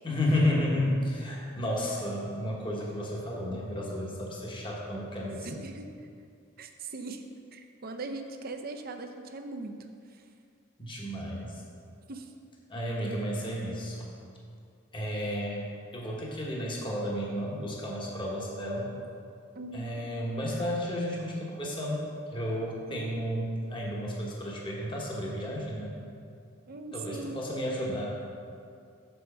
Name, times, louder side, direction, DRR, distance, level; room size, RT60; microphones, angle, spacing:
voice 1, 0.0-5.6 10.8-11.5 12.7-14.1 14.9-15.7 15.9-18.9 19.7-26.0 26.9-28.1, left 1 dB, 25° left, -3 dB, 1.1 m, -32 dB
voice 2, 5.4-6.1 6.6-10.2 12.1-12.3 19.6-19.9 22.9-23.0 26.7-27.5, right 3 dB, 45° right, 5 dB, 0.6 m, -40 dB
6.9 x 4.5 x 6.7 m, 2.4 s
head